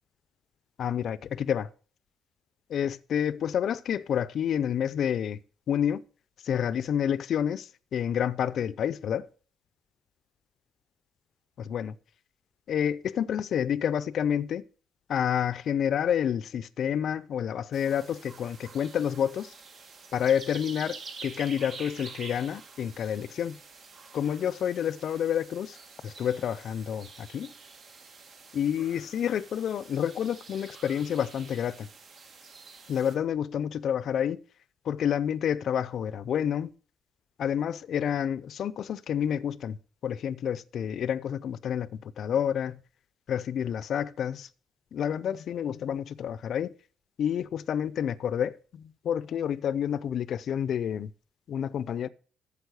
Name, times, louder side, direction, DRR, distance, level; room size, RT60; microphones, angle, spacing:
voice 1, 0.8-1.7 2.7-5.4 5.7-6.0 6.4-9.3 11.6-12.0 12.7-14.6 15.1-19.5 20.1-23.6 24.1-25.8 26.0-27.5 28.5-31.9 32.9-34.4 34.9-36.7 37.4-39.8 40.0-42.8 43.3-44.5 44.9-46.7 47.2-51.1 51.5-52.1, left 9 dB, 65° left, 0.5 m, -29 dB
sound 1, 17.7-33.2, right 4 dB, 60° right, 1.7 m, -47 dB
8.3 x 7.2 x 6.3 m
cardioid pair, 90°, 0 cm